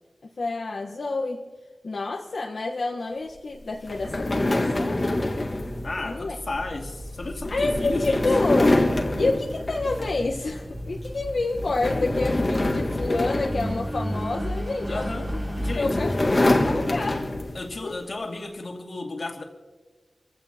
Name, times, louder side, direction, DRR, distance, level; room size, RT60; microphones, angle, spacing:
voice 1, 0.4-1.4 1.8-5.3 5.8-6.3 7.5-8.8 9.2-15.1 15.7-17.3 17.8-18.0, left 3 dB, 75° left, -1 dB, 1.2 m, -28 dB
sound 1, 3.9-10.4 10.8-11.1 11.5-14.5 15.3-17.7, left 1 dB, 35° left, 1.7 m, -26 dB
voice 2, 5.8-8.3 14.9-15.3 15.6-16.0 17.5-19.4, left 3 dB, 60° left, 1 dB, 2.4 m, -33 dB
Engine, 6.5-15.8, equal, 15° right, 2.3 m, -34 dB
28.0 x 16.0 x 2.9 m, 1.3 s
wide cardioid pair, 100°, 0 cm